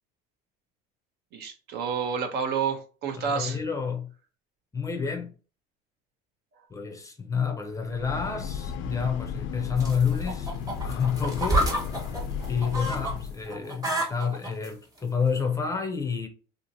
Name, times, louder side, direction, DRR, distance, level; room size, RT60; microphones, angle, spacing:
voice 1, 1.3-3.6, right 6 dB, 55° right, 0.7 m, -29 dB
voice 2, 3.2-4.1 4.7-5.3 6.7-10.5 10.8-11.7 12.5-16.3, left 6 dB, 15° left, 0.5 m, -29 dB
Breathing / Train, 7.7-13.5, left 7 dB, 70° left, 0.4 m, -34 dB
sound 1, 9.8-13.1 13.5-14.7 15.4-15.5, right 1 dB, 15° right, 1.1 m, -29 dB
2.7 x 2.5 x 2.6 m
supercardioid pair, 100°, 20 cm